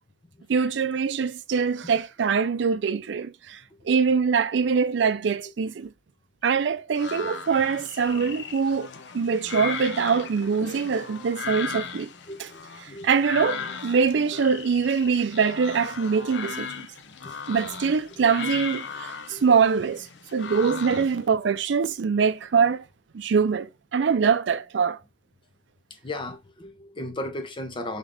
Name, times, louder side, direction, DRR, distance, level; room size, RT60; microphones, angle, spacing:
voice 1, 0.5-3.6 3.9-5.9 6.4-8.9 9.1-12.1 13.0-16.7 17.5-20.1 20.3-22.8 23.1-25.0, right 6 dB, 75° right, 0.4 m, -23 dB
sound 1, 7.0-21.2, left 6 dB, 70° left, 0.6 m, -37 dB
voice 2, 12.3-13.1 13.6-13.7 16.1-16.2 17.2-17.3 18.1-18.2 19.3-19.4 25.9-28.0, left 1 dB, 30° left, 0.7 m, -37 dB
3.6 x 3.4 x 3.6 m
head